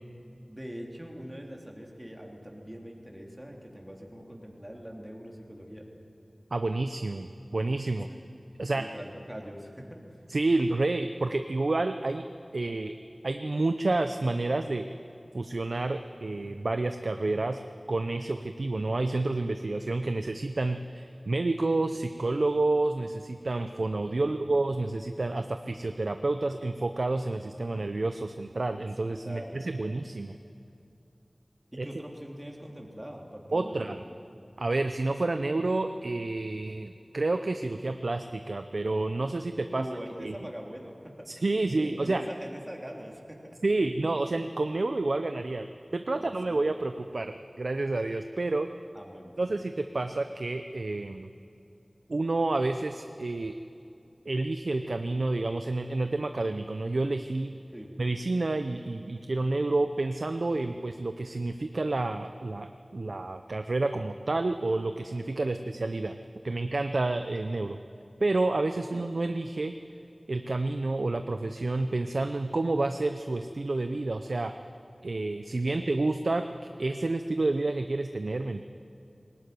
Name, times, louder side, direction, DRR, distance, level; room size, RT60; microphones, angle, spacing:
voice 1, 0.5-5.9 8.1-8.2 8.7-10.2 24.2-24.5 29.2-29.6 31.7-34.0 39.7-41.3 41.7-43.6 46.1-46.8 48.9-49.6 57.7-57.9 65.4-65.8 68.9-69.0 75.6-76.0, equal, 15° right, 0 dB, 3.2 m, -43 dB
voice 2, 6.5-8.1 8.6-8.9 10.3-12.3 12.5-12.9 13.2-14.9 15.3-17.6 17.9-30.4 31.8-31.9 33.5-34.0 34.6-39.9 40.2-40.3 41.3-42.2 43.6-48.7 49.4-51.3 52.1-53.5 54.3-57.5 58.0-66.2 66.4-67.8 68.2-69.7 70.3-74.5 75.0-76.5 76.8-78.6, right 2 dB, 75° right, 8 dB, 0.6 m, -29 dB
19.0 x 17.5 x 9.5 m, 2.7 s
wide cardioid pair, 45°, 0 cm